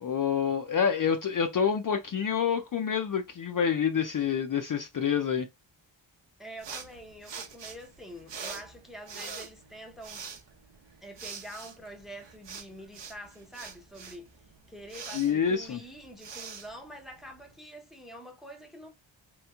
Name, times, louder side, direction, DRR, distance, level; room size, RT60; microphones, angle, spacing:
voice 1, 0.0-5.5 15.1-15.8, left 7 dB, 45° left, 0.4 m, -27 dB
voice 2, 6.4-10.3 11.0-14.3 14.7-18.9, equal, ahead, 0.6 m, -46 dB
sound 1, 6.6-17.5, right 6 dB, 60° right, 0.8 m, -44 dB
3.2 x 3.0 x 2.2 m
wide cardioid pair, 120°, 47 cm